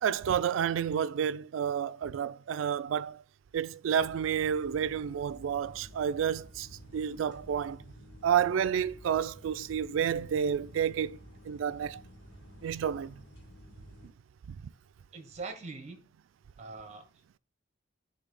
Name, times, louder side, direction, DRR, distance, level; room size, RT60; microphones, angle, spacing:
voice 1, 0.0-3.2 3.5-7.8 8.2-11.2 11.4-12.0 12.6-13.2 14.5-14.7, right 8 dB, 80° right, 0.3 m, -30 dB
sound 1, 3.9-14.1, equal, 70° left, 1.6 m, -52 dB
voice 2, 15.1-16.0 16.6-17.1, right 3 dB, 35° right, 1.0 m, -42 dB
7.0 x 2.7 x 5.2 m
head